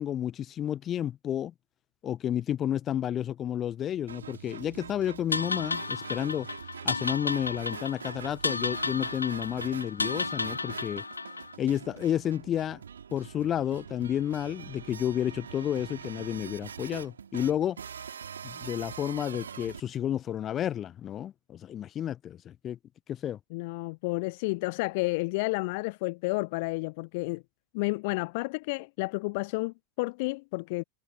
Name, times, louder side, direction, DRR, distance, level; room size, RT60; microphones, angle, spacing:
voice 1, 0.0-1.5 2.0-6.5 6.8-11.0 11.6-12.8 13.1-17.8 18.4-22.8 23.1-23.4, left 10 dB, 30° left, 1.2 m, -31 dB
sound 1, 4.1-19.8, right 7 dB, 70° right, 4.8 m, -44 dB
sound 2, 5.3-11.6, left 3 dB, 80° left, 3.0 m, -33 dB
voice 2, 23.5-27.4 27.7-30.8, left 26 dB, 50° left, 0.6 m, -31 dB
figure-of-eight pair, 90°, 0 cm